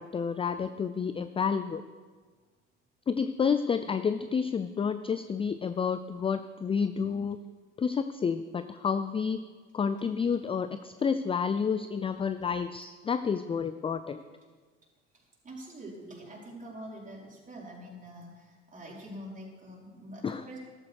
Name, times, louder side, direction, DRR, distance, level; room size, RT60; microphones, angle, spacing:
voice 1, 0.0-1.8 3.1-7.4 7.8-9.4 9.7-14.2 20.2-20.4, left 6 dB, 15° left, 12 dB, 0.4 m, -30 dB
voice 2, 15.1-20.6, right 1 dB, 25° right, -3 dB, 5.0 m, -45 dB
14.5 x 12.5 x 4.7 m, 1.5 s
hypercardioid pair, 70°, 34 cm